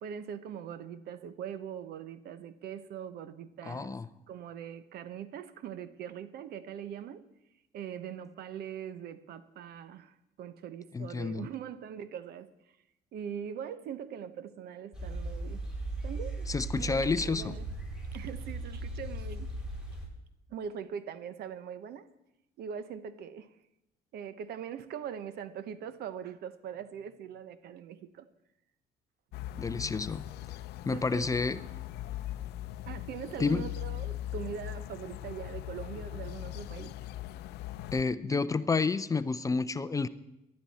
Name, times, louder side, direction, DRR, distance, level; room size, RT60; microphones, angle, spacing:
voice 1, 0.0-4.0 4.3-7.3 7.7-12.5 13.1-15.7 16.0-16.5 16.8-17.6 18.1-19.6 20.5-22.1 22.6-23.5 24.1-28.3 30.9-31.3 32.9-36.9, right 8 dB, 70° right, 12 dB, 1.0 m, -42 dB
voice 2, 3.6-4.1 10.9-11.5 16.5-17.6 29.6-30.3 30.9-31.6 33.4-33.6 37.9-40.1, left 4 dB, 20° left, 13 dB, 0.5 m, -30 dB
sound 1, 14.9-20.1, right 2 dB, 5° right, 4.5 m, -38 dB
sound 2, 29.3-38.0, left 14 dB, 75° left, 0.6 m, -40 dB
19.5 x 12.0 x 4.2 m, 0.89 s
cardioid pair, 110°, 17 cm